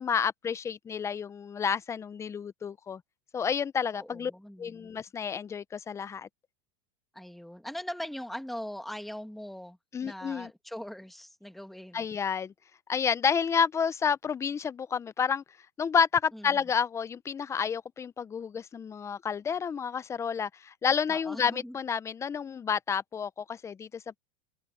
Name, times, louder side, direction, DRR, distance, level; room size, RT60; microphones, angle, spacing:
voice 1, 0.0-3.0 3.3-4.3 4.6-6.3 9.9-10.5 11.9-12.5 12.9-15.4 15.8-24.2, left 6 dB, 15° left, 0.6 m, -30 dB
voice 2, 3.9-4.9 7.1-12.0 16.3-16.6 21.1-21.8, left 1 dB, ahead, 1.8 m, -41 dB
supercardioid pair, 130°, 17 cm